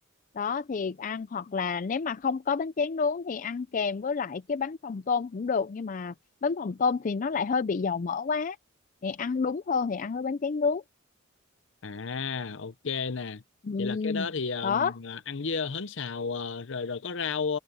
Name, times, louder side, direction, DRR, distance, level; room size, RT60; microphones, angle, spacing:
voice 1, 0.4-6.1 6.4-8.6 9.0-10.8 13.6-14.3 14.6-14.9, left 5 dB, 40° left, 0.4 m, -29 dB
voice 2, 11.8-13.4 13.8-17.6, left 5 dB, 60° left, 0.7 m, -33 dB
head